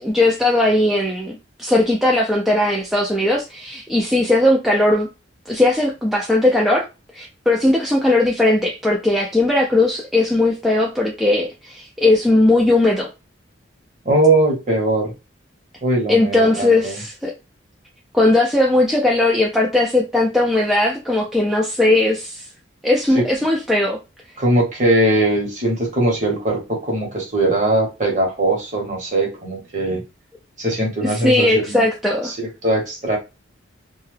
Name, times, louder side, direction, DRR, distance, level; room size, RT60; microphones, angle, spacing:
voice 1, 0.0-5.1 5.5-6.9 7.1-13.1 16.1-17.3 18.1-22.5 22.8-24.0 31.0-32.3, left 2 dB, ahead, 0.3 m, -18 dB
voice 2, 14.0-15.1 15.8-17.0 23.1-23.2 24.4-30.0 30.6-31.9 32.2-33.2, right 1 dB, 40° right, 1.0 m, -20 dB
2.7 x 2.2 x 3.2 m
head